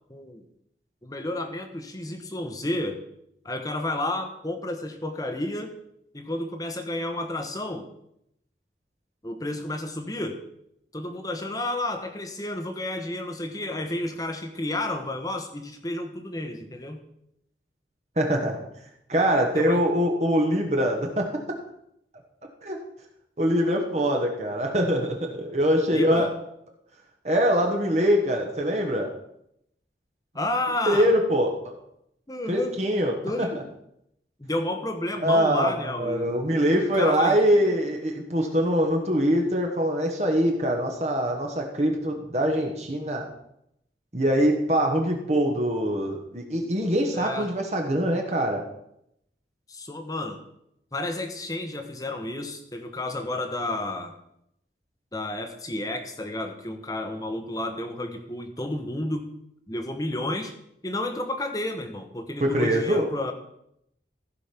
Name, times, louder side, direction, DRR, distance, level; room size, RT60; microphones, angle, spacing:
voice 1, 0.1-0.4 1.0-3.0 3.4-5.7 6.1-7.9 9.2-10.4 10.9-17.0 19.5-19.8 25.9-26.3 30.3-31.1 32.3-32.7 33.2-33.6 34.4-36.3 37.0-37.4 47.1-47.5 49.7-50.4 50.9-54.1 55.1-59.3 59.7-60.5 60.8-63.3, left 1 dB, 20° left, 6 dB, 1.1 m, -31 dB
voice 2, 18.2-18.6 19.1-21.6 22.6-22.8 23.4-26.3 27.2-29.1 30.9-31.8 32.5-33.5 35.2-43.3 44.1-48.6 62.4-63.1, equal, 35° right, 2 dB, 1.3 m, -23 dB
15.0 x 5.2 x 5.9 m, 0.77 s
head